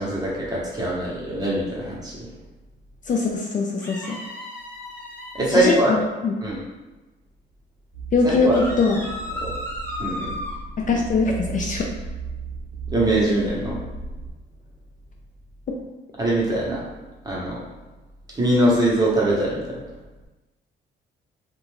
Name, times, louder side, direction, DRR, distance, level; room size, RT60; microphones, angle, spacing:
voice 1, 0.0-2.1 5.3-5.9 6.4-6.6 8.2-8.6 9.4-9.5 10.0-10.4 12.9-13.8 16.2-16.8 17.2-17.6 18.3-19.6, right 1 dB, 20° right, -5 dB, 0.9 m, -22 dB
voice 2, 3.1-4.2 5.5-6.4 8.1-9.0 10.8-11.9 15.7-15.8, left 4 dB, 40° left, 0 dB, 0.4 m, -22 dB
sound 1, 3.8-5.6 8.5-10.6, left 1 dB, 10° left, 0.8 m, -34 dB
sound 2, 7.9-14.3, right 5 dB, 40° right, 0.6 m, -35 dB
2.4 x 2.2 x 3.1 m, 1.2 s
cardioid pair, 90°, 20 cm